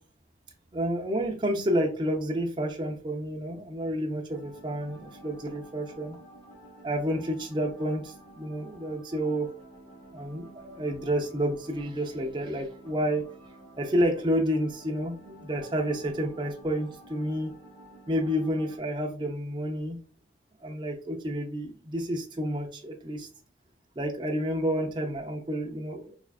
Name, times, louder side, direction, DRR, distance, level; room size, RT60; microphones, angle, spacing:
voice 1, 0.7-6.2 6.8-9.5 10.1-13.2 13.8-17.5 18.1-20.0 20.6-23.3 24.0-26.1, equal, 25° right, 0 dB, 0.5 m, -30 dB
sound 1, 4.3-18.8, right 1 dB, 20° left, 0.7 m, -51 dB
4.7 x 2.3 x 2.4 m, 0.39 s
head